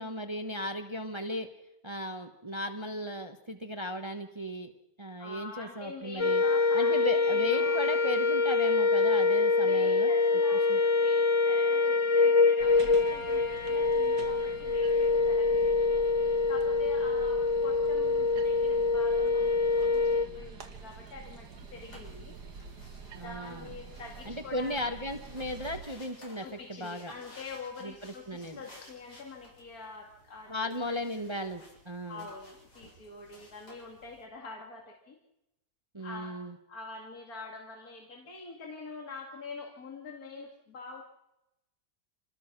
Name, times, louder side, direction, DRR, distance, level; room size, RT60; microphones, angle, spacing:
voice 1, 0.0-1.5 1.8-4.7 5.0-6.4 6.7-10.1 10.7-10.8 23.1-23.7 24.3-27.1 27.8-28.6 30.5-32.3 35.9-36.5, left 1 dB, 20° right, 6 dB, 1.2 m, -36 dB
voice 2, 5.2-7.8 9.6-22.4 23.2-24.8 26.4-31.4 32.1-35.2 36.0-41.0, left 4 dB, 65° left, 1 dB, 2.7 m, -45 dB
sound 1, 6.2-20.3, left 4 dB, 30° left, 0.5 m, -25 dB
sound 2, 12.6-25.8, right 5 dB, 80° right, 2.1 m, -47 dB
sound 3, 20.7-34.2, left 1 dB, 80° left, 8.5 m, -57 dB
27.5 x 20.0 x 6.1 m, 0.90 s
omnidirectional pair, 1.7 m